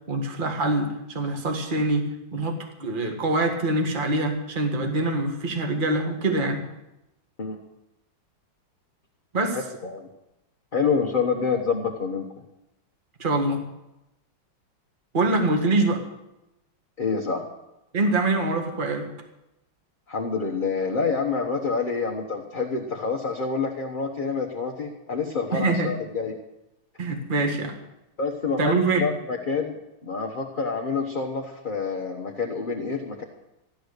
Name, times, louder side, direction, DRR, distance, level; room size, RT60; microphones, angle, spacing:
voice 1, 0.1-6.6 9.3-9.6 13.2-13.6 15.1-16.0 17.9-19.1 25.5-25.9 27.0-27.8 28.6-29.1, right 2 dB, 25° right, 3 dB, 1.7 m, -24 dB
voice 2, 9.5-10.1 10.7-12.2 17.0-17.5 20.1-26.4 28.2-29.8 30.0-33.2, left 5 dB, 30° left, 0 dB, 1.1 m, -27 dB
15.0 x 11.0 x 6.7 m, 0.91 s
omnidirectional pair, 2.2 m